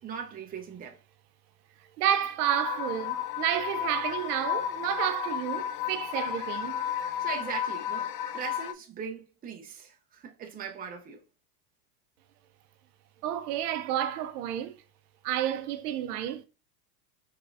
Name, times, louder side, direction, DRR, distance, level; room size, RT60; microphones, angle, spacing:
voice 1, 0.0-1.0 7.2-11.2, right 6 dB, 20° right, 0.8 m, -39 dB
voice 2, 2.0-7.1 13.2-14.7 15.2-16.4, right 11 dB, 70° right, 0.7 m, -30 dB
sound 1, 2.4-8.7, left 10 dB, 75° left, 0.7 m, -33 dB
4.8 x 3.7 x 2.6 m
supercardioid pair, 130°, 47 cm